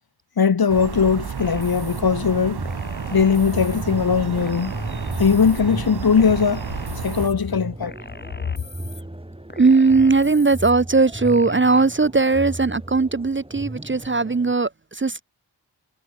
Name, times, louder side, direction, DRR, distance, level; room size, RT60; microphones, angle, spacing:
voice 1, 0.4-2.6 3.1-4.7 5.2-6.6 7.0-8.0, left 6 dB, 55° left, 1.0 m, -19 dB
sound 1, 0.7-7.3, right 7 dB, 60° right, 0.9 m, -31 dB
sound 2, 1.4-2.0 2.6-3.9 4.4-5.6 6.1-7.3 7.8-9.0 9.5-10.7 11.2-11.8, left 2 dB, 25° left, 4.0 m, -42 dB
sound 3, 1.8-14.5, right 1 dB, 10° right, 2.4 m, -36 dB
voice 2, 9.6-15.2, right 4 dB, 30° right, 0.6 m, -18 dB
wide cardioid pair, 50°, 43 cm